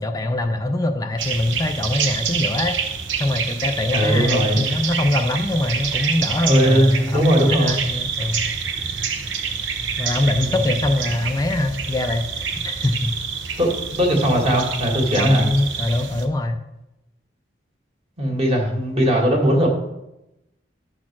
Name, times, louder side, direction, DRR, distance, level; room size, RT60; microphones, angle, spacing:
voice 1, 0.0-2.8 3.2-8.5 10.0-13.2 13.5-13.6 15.1-16.6, left 1 dB, 20° left, 5 dB, 0.4 m, -23 dB
sound 1, 1.2-16.3, right 6 dB, 90° right, 0.8 m, -27 dB
voice 2, 3.9-4.7 6.4-7.8 10.4-10.6 13.6-15.5 18.2-19.7, equal, 35° right, 0 dB, 1.9 m, -19 dB
10.5 x 4.3 x 6.0 m, 0.92 s
head